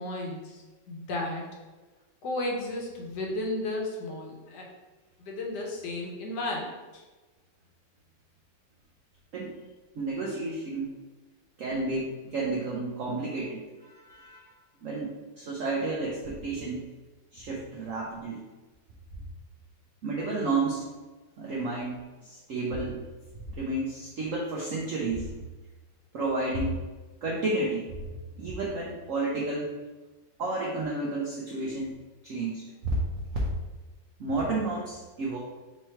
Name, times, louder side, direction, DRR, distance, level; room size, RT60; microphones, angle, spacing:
voice 1, 0.0-1.5 2.2-4.7 5.2-7.0, left 2 dB, 65° left, -1 dB, 1.3 m, -34 dB
voice 2, 10.0-10.9 11.6-14.5 14.8-16.8 17.3-18.4 20.0-20.9 21.4-23.0 23.6-25.3 26.1-26.8 27.2-28.0 28.4-29.7 30.4-32.0 32.2-33.0 33.3-33.5 34.2-35.4, right 2 dB, 70° right, -3 dB, 0.7 m, -31 dB
3.6 x 3.1 x 4.4 m, 1.2 s
omnidirectional pair, 2.1 m